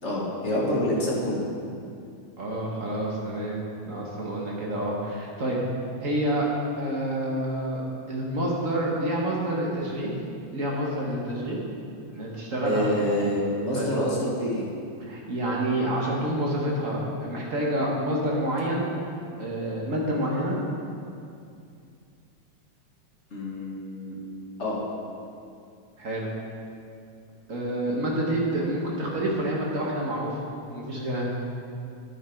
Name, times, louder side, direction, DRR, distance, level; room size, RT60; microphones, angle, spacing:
voice 1, 0.0-1.5 12.6-14.6 23.3-24.2 24.6-24.8, left 1 dB, 30° left, -5 dB, 1.3 m, -27 dB
voice 2, 2.4-5.6 6.0-6.5 6.8-7.8 8.1-10.2 10.5-11.6 12.1-13.1 13.7-14.0 15.0-18.8 19.4-20.6 26.0-26.3 27.5-31.3, right 1 dB, 45° right, -3 dB, 1.0 m, -28 dB
10.5 x 10.5 x 4.5 m, 2.4 s
omnidirectional pair, 3.5 m